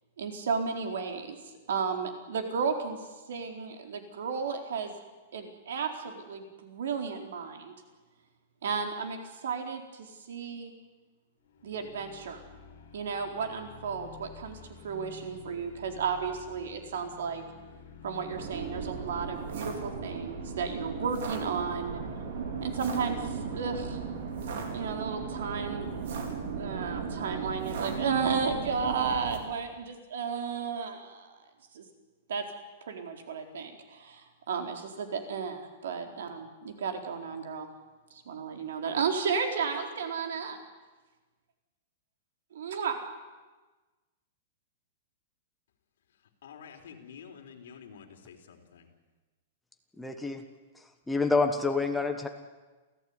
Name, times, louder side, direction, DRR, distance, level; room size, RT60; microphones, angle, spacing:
voice 1, 0.2-1.4 1.7-4.9 5.3-7.7 8.6-10.7 11.6-12.4 12.9-14.6 14.8-17.4 18.0-22.0 22.6-24.0 24.7-25.9 26.4-31.4 31.7-31.8 32.3-32.4 32.8-37.7 38.1-40.6 42.5-43.0, right 5 dB, 75° right, 5 dB, 4.2 m, -33 dB
sound 1, 11.4-26.2, left 6 dB, 45° left, 4.9 m, -50 dB
sound 2, 18.3-29.4, right 5 dB, 60° right, 4.5 m, -36 dB
voice 2, 46.4-48.9, left 7 dB, 70° left, 4 dB, 3.8 m, -49 dB
voice 3, 50.0-50.4 51.1-52.3, left 3 dB, 5° left, 5 dB, 1.4 m, -27 dB
28.5 x 15.5 x 9.8 m, 1.3 s
supercardioid pair, 175°, 0 cm